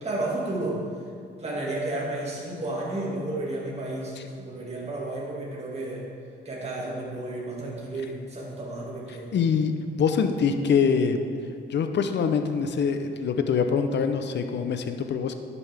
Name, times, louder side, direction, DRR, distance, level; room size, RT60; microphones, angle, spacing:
voice 1, 0.0-0.8 1.4-6.1 6.4-9.3, right 2 dB, 30° right, -4 dB, 2.1 m, -32 dB
voice 2, 9.3-9.7 10.0-11.2 11.7-15.3, left 6 dB, 55° left, 7 dB, 0.7 m, -24 dB
11.0 x 7.1 x 3.5 m, 2.3 s
cardioid pair, 85°, 21 cm